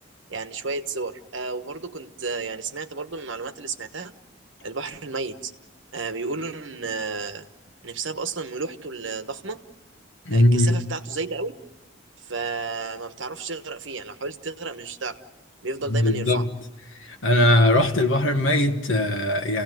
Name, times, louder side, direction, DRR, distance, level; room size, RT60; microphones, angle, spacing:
voice 1, 0.3-4.1 4.6-5.5 5.9-7.5 7.8-9.6 10.3-11.6 12.2-15.2 15.6-16.5, right 4 dB, 75° right, 1.2 m, -32 dB
voice 2, 10.2-10.8 15.9-16.5 17.2-19.6, left 1 dB, 90° left, 1.5 m, -20 dB
28.5 x 17.0 x 9.3 m
head